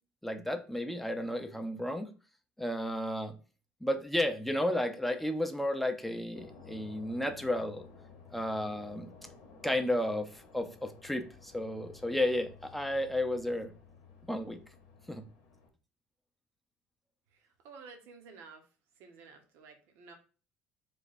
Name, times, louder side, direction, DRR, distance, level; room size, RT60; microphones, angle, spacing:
voice 1, 0.2-2.1 2.6-3.4 3.8-7.9 8.3-9.1 9.6-13.7 14.3-14.6 15.1-15.3, left 1 dB, 5° left, 6 dB, 0.5 m, -33 dB
sound 1, 6.3-15.7, left 5 dB, 85° left, 0.8 m, -55 dB
voice 2, 17.3-18.7 19.0-20.1, right 5 dB, 75° right, 5 dB, 0.9 m, -52 dB
3.3 x 2.2 x 4.0 m, 0.37 s
cardioid pair, 105°, 4 cm